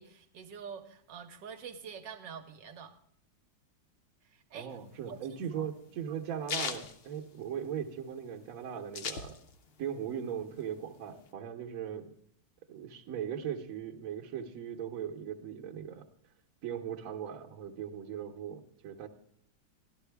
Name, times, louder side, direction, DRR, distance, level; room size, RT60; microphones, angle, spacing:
voice 1, 0.0-2.9 4.2-4.8 5.0-5.7 6.1-6.2, right 6 dB, 75° right, 5 dB, 1.3 m, -46 dB
voice 2, 4.5-9.4 9.8-12.1 12.7-16.1 16.6-19.1, right 8 dB, 55° right, 2 dB, 1.1 m, -39 dB
sound 1, 4.8-7.9 8.2-8.3 8.5-9.8 10.2-11.3, left 5 dB, 80° left, 0.5 m, -39 dB
12.5 x 12.0 x 3.4 m, 0.70 s
omnidirectional pair, 2.1 m